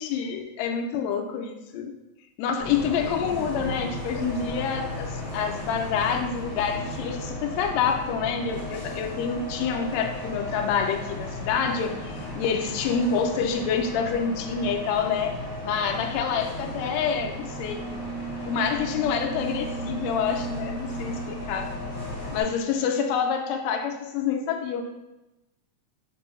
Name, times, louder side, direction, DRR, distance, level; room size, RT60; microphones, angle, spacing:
voice 1, 0.0-2.0 2.4-15.4 15.6-17.9 18.4-21.8 22.3-24.8, left 6 dB, 80° left, 4 dB, 1.6 m, -27 dB
Bus, 2.6-22.4, equal, 50° left, 1.9 m, -35 dB
6.1 x 2.6 x 3.0 m, 0.95 s
omnidirectional pair, 3.3 m